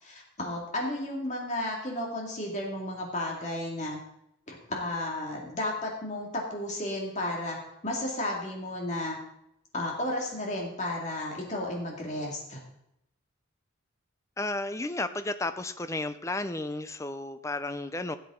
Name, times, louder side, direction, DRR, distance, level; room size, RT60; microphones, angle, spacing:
voice 1, 0.0-4.0 4.5-7.6 7.8-9.2 9.7-12.6, left 1 dB, 35° left, -1 dB, 2.1 m, -33 dB
voice 2, 14.4-18.2, left 2 dB, 15° left, 11 dB, 0.4 m, -33 dB
16.5 x 7.8 x 3.7 m, 0.81 s
head